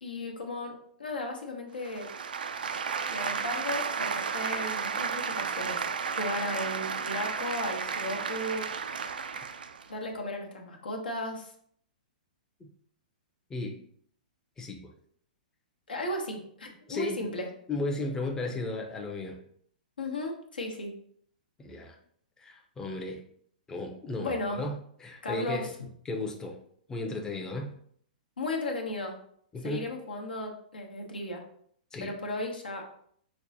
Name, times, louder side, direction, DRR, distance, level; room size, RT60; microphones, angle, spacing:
voice 1, 0.0-0.7 1.0-2.1 3.1-5.8 6.2-8.6 9.9-11.5 15.9-17.5 20.0-20.9 24.2-24.6 25.2-25.7 28.4-29.1 29.6-31.4 32.0-32.8, left 2 dB, 85° left, 1 dB, 0.8 m, -35 dB
sound 1, 1.8-9.9, right 6 dB, 80° right, 0.3 m, -33 dB
voice 2, 14.6-14.9 16.9-17.3 17.7-19.4 21.6-22.0 22.4-23.2 23.7-25.7 26.0-26.6 26.9-27.7 29.5-29.9 31.9-32.1, left 2 dB, 10° left, 1 dB, 0.5 m, -35 dB
5.1 x 2.1 x 2.7 m, 0.63 s
hypercardioid pair, 120°, 5 cm